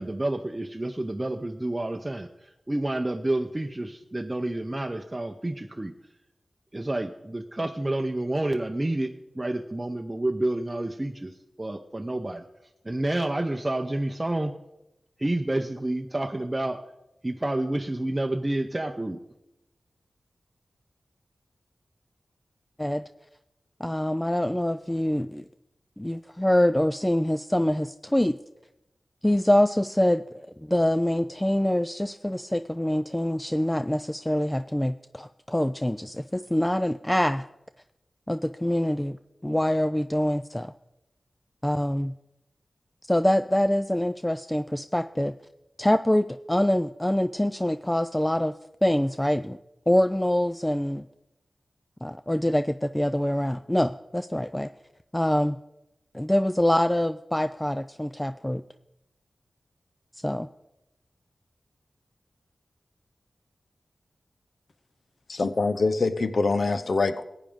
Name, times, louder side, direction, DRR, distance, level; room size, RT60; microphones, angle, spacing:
voice 1, 0.0-2.3 2.7-5.9 6.7-11.3 11.6-12.4 12.8-14.5 15.2-16.8 17.2-19.2, right 1 dB, 25° right, 4 dB, 0.6 m, -29 dB
voice 2, 23.8-25.5 26.0-28.4 29.2-30.2 30.6-37.4 38.3-39.2 39.4-40.7 41.6-42.1 43.1-45.4 45.8-48.5 48.8-49.6 49.9-51.1 52.0-54.7 55.1-55.6 56.1-58.6 60.2-60.5, left 1 dB, 10° left, 11 dB, 0.3 m, -25 dB
voice 3, 65.3-67.2, left 3 dB, 65° left, 12 dB, 0.7 m, -24 dB
15.0 x 9.0 x 3.6 m, 0.91 s
cardioid pair, 45°, 0 cm